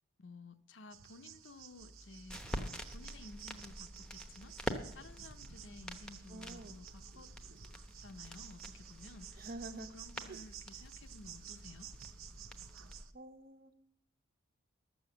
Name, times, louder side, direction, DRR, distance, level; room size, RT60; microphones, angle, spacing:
voice 1, 0.2-7.3 8.0-11.9, left 2 dB, 65° left, 10 dB, 0.8 m, -55 dB
sound 1, 0.9-13.1, right 10 dB, 90° right, 0.8 m, -53 dB
sound 2, 1.8-13.0, equal, 5° left, 0.9 m, -47 dB
voice 2, 6.3-6.8 9.4-9.9 10.3-10.4 13.1-13.7, right 2 dB, 45° right, 10 dB, 0.8 m, -48 dB
12.5 x 7.1 x 7.8 m, 0.72 s
head